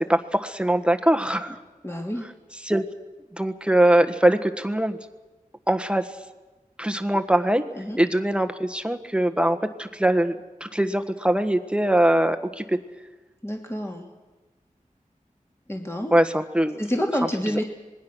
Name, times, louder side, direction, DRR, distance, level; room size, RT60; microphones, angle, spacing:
voice 1, 0.0-1.6 2.6-2.8 3.3-5.0 5.7-6.1 6.8-7.6 8.0-12.8 16.1-16.8, right 1 dB, 5° right, 7 dB, 1.4 m, -22 dB
voice 2, 1.8-2.3 7.7-8.0 13.4-14.1 15.7-16.2 16.8-17.6, equal, 20° left, 1 dB, 2.8 m, -28 dB
26.0 x 20.5 x 6.3 m, 1.2 s
wide cardioid pair, 55°, 14 cm